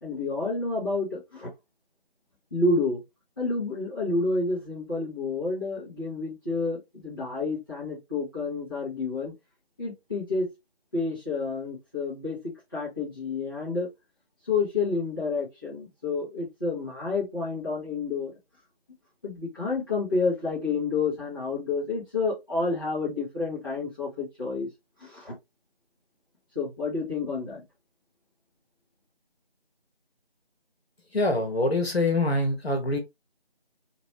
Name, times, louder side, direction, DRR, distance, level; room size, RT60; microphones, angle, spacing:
voice 1, 0.0-1.5 2.5-3.0 3.4-9.3 9.8-10.5 10.9-13.9 14.5-18.3 19.2-24.7 25.0-25.4 26.5-27.6, left 3 dB, 20° left, 1.4 m, -29 dB
voice 2, 31.1-33.0, left 2 dB, 85° left, 1.2 m, -24 dB
3.0 x 2.7 x 2.8 m
figure-of-eight pair, 170°, 30 cm